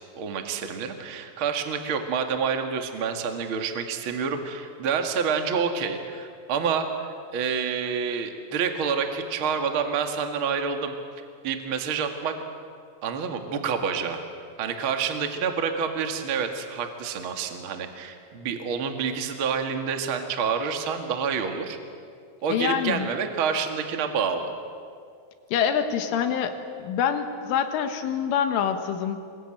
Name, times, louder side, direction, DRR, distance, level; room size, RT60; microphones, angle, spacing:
voice 1, 0.1-7.0 7.3-10.9 11.4-12.3 13.0-14.2 14.6-21.8 22.4-24.5, right 6 dB, 65° right, 5 dB, 1.3 m, -28 dB
voice 2, 22.5-23.1 25.5-29.2, left 8 dB, 75° left, 7 dB, 3.9 m, -26 dB
27.5 x 23.0 x 9.1 m, 2.2 s
omnidirectional pair, 5.8 m